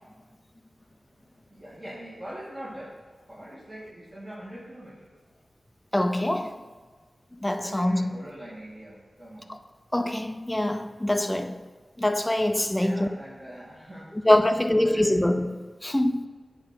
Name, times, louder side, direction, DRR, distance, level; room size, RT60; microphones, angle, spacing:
voice 1, 0.8-5.1 7.6-9.6 12.7-15.2, right 1 dB, 30° right, 2.3 m, -43 dB
voice 2, 5.9-6.6 7.4-8.1 9.9-11.6 12.0-13.1 14.3-16.3, left 1 dB, 15° left, 0.5 m, -24 dB
8.6 x 3.1 x 5.8 m
cardioid pair, 40°, 0 cm